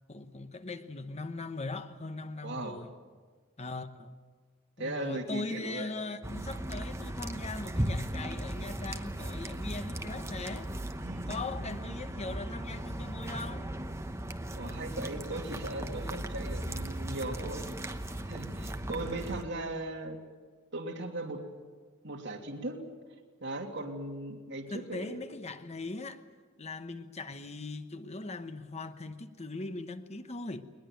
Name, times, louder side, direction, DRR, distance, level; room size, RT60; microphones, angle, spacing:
voice 1, 0.1-2.9 3.6-4.1 4.8-10.7 11.3-13.7 24.7-26.2 26.6-30.6, left 3 dB, 35° left, 1.0 m, -40 dB
voice 2, 2.4-2.8 4.8-5.9 11.0-11.4 14.5-17.7 18.3-20.2 20.7-21.4 22.0-22.8 23.4-25.2, right 2 dB, 60° right, 2.9 m, -38 dB
sound 1, 6.2-19.4, right 1 dB, 15° right, 1.1 m, -37 dB
21.0 x 21.0 x 9.2 m
head